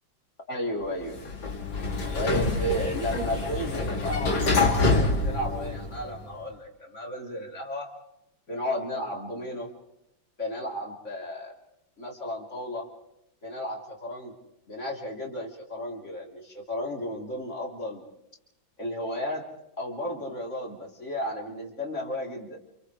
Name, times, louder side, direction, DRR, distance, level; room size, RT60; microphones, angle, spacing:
voice 1, 0.5-1.2 2.1-7.9 8.5-9.7 10.4-11.5 12.0-12.9 13.4-14.4 14.7-18.0 18.8-19.5 19.8-22.6, equal, 40° left, -2 dB, 3.7 m, -33 dB
Sliding door, 1.0-6.2, left 3 dB, 70° left, 3.3 m, -26 dB
29.5 x 28.0 x 3.3 m, 0.87 s
omnidirectional pair, 2.1 m